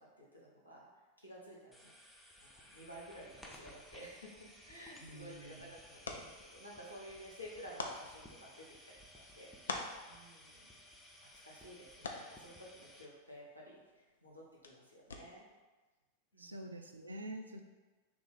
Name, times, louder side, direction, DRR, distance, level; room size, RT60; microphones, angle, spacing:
voice 1, 0.2-0.9 1.2-2.0 2.4-10.6 11.2-15.4 16.3-16.6, equal, 85° left, -4 dB, 0.8 m, -53 dB
sound 1, 1.7-13.1, left 1 dB, 5° left, 0.5 m, -58 dB
sound 2, 4.9-15.6, left 3 dB, 70° left, 0.4 m, -49 dB
voice 2, 5.0-5.7 16.4-17.6, right 1 dB, 75° right, 5 dB, 0.3 m, -47 dB
3.0 x 2.5 x 3.9 m, 1.3 s
figure-of-eight pair, 90°, 0 cm